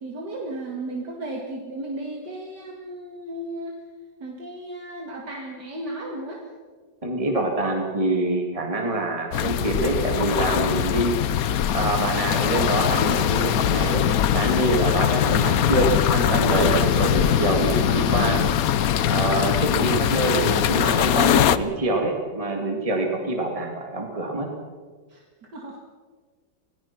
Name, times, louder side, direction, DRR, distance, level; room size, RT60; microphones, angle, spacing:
voice 1, 0.0-3.8 4.2-6.4 25.1-25.8, right 1 dB, 70° right, 0 dB, 2.8 m, -35 dB
voice 2, 7.0-11.2 11.7-14.1 14.3-18.4 19.0-24.5, right 2 dB, 20° right, 1 dB, 2.3 m, -25 dB
sound 1, 9.3-21.6, left 10 dB, 60° left, 1.1 m, -21 dB
27.0 x 18.5 x 6.0 m, 1.5 s
omnidirectional pair, 1.9 m